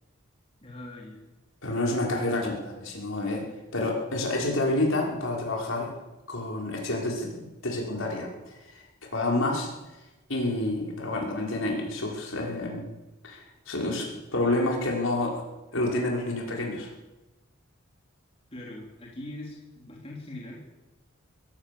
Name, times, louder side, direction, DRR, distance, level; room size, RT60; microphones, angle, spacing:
voice 1, 0.6-1.2 18.5-20.7, left 1 dB, 25° left, -2 dB, 3.7 m, -41 dB
voice 2, 1.6-3.4 3.7-5.9 6.3-7.3 7.6-8.8 9.1-9.7 10.3-12.9 13.2-15.4 15.7-16.9, left 2 dB, 70° left, -1 dB, 5.7 m, -28 dB
22.5 x 16.5 x 7.1 m, 1.1 s
head